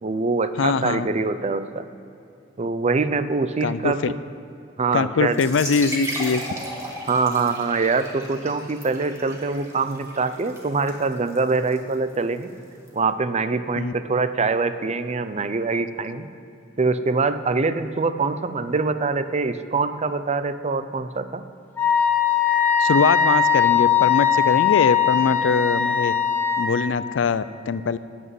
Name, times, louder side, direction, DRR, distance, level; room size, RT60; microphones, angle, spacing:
voice 1, 0.0-1.9 2.6-4.2 4.8-5.4 7.1-12.5 12.9-16.3 16.8-21.4, right 4 dB, 35° right, 11 dB, 0.6 m, -24 dB
voice 2, 0.6-1.1 3.6-4.1 4.9-6.4 13.8-13.9 22.8-26.1 26.6-28.0, left 5 dB, 85° left, 15 dB, 0.5 m, -22 dB
sound 1, 5.3-12.9, right 1 dB, 15° right, 2.0 m, -36 dB
Wind instrument woodwind instrument, 21.8-26.7, left 8 dB, 10° left, 1.5 m, -20 dB
13.5 x 6.2 x 9.4 m, 2.7 s
head